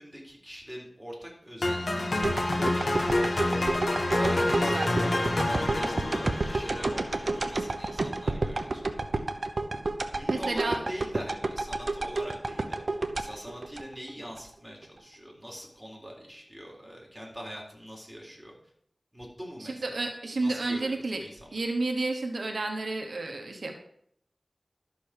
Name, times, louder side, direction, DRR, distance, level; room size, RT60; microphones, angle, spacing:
voice 1, 0.0-2.3 2.7-3.3 4.1-8.8 10.1-18.5 19.1-20.1 20.4-21.6, equal, 10° right, -2 dB, 4.1 m, -43 dB
sound 1, 1.6-7.7, left 1 dB, 70° left, 1.6 m, -28 dB
sound 2, 2.2-14.4 14.8-14.9, right 2 dB, 65° right, 0.9 m, -31 dB
voice 2, 4.1-4.9 10.3-10.8 19.6-21.2 21.5-23.8, right 2 dB, 90° right, 3 dB, 1.3 m, -31 dB
12.0 x 5.5 x 6.5 m, 0.69 s
wide cardioid pair, 55°, 0 cm